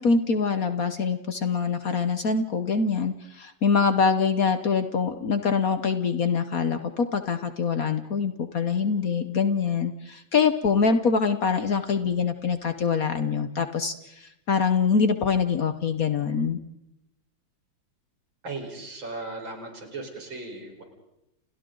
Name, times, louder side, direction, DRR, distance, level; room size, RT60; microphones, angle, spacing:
voice 1, 0.0-16.6, left 5 dB, 50° left, 9 dB, 1.3 m, -24 dB
voice 2, 18.4-20.8, right 3 dB, 70° right, 2 dB, 5.5 m, -37 dB
30.0 x 29.5 x 3.9 m, 0.89 s
omnidirectional pair, 2.2 m